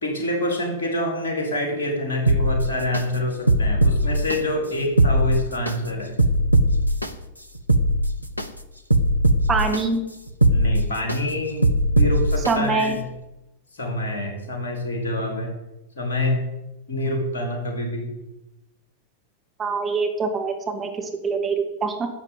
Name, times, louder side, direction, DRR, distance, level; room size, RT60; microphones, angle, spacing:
voice 1, 0.0-6.1 10.5-13.0 13.7-15.5 15.9-16.4 16.9-18.1, left 1 dB, 65° left, 2 dB, 4.5 m, -26 dB
sound 1, 2.3-3.0 3.5-4.4 4.8-5.7 6.2-7.1 7.5-8.5 8.9-9.8 10.3-11.2 11.6-12.5 13.0-13.1, right 1 dB, 90° right, 0.9 m, -19 dB
voice 2, 9.5-10.0 12.5-13.0 19.6-22.1, right 4 dB, 20° right, 3 dB, 2.7 m, -24 dB
12.5 x 7.3 x 9.5 m, 0.96 s
figure-of-eight pair, 90°, 0 cm